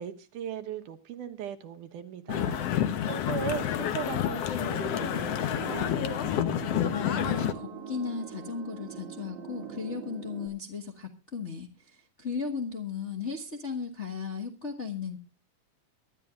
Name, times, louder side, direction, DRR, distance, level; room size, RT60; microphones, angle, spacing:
voice 1, 0.0-5.9, right 9 dB, 75° right, 2.6 m, -38 dB
sound 1, 2.3-7.5, left 10 dB, 60° left, 1.8 m, -29 dB
voice 2, 2.8-3.2 6.5-15.2, left 6 dB, 40° left, 1.0 m, -36 dB
sound 2, 4.7-10.5, right 7 dB, 50° right, 3.2 m, -42 dB
24.0 x 12.0 x 2.4 m
omnidirectional pair, 3.7 m